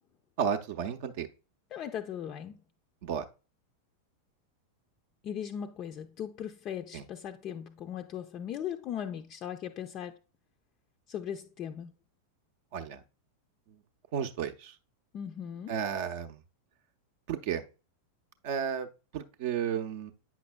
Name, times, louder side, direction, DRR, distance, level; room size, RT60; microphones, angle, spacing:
voice 1, 0.4-1.3 3.0-3.2 6.9-7.0 12.7-13.0 14.1-14.7 15.7-16.4 17.3-17.6 18.4-18.9 19.1-20.1, right 8 dB, 50° right, 0.6 m, -32 dB
voice 2, 1.7-2.6 5.2-10.2 11.1-11.9 15.1-15.7, left 9 dB, 35° left, 0.4 m, -38 dB
8.4 x 5.8 x 2.2 m
figure-of-eight pair, 90°, 0 cm